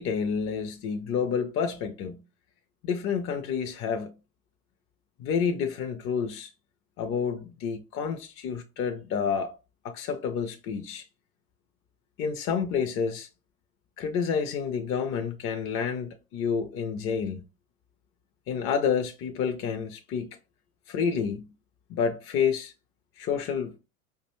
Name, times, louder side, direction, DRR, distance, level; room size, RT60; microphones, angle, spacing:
voice 1, 0.0-2.2 2.8-4.1 5.2-6.5 7.0-9.5 9.8-11.0 12.2-13.3 14.0-17.4 18.5-20.3 20.9-21.5 21.9-22.7 23.2-23.7, left 6 dB, 30° left, 0.5 m, -29 dB
4.8 x 2.2 x 2.9 m
hypercardioid pair, 95°, 43 cm